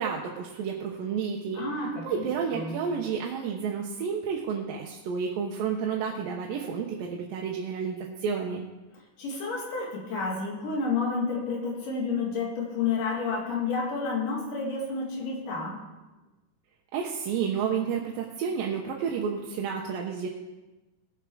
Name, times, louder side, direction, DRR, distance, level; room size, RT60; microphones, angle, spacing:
voice 1, 0.0-1.6 2.0-8.6 16.9-20.3, right 6 dB, 80° right, 0 dB, 2.7 m, -31 dB
voice 2, 1.5-2.8 9.2-15.8, left 4 dB, 65° left, -2 dB, 3.8 m, -30 dB
18.5 x 7.4 x 4.9 m, 1.1 s
omnidirectional pair, 4.1 m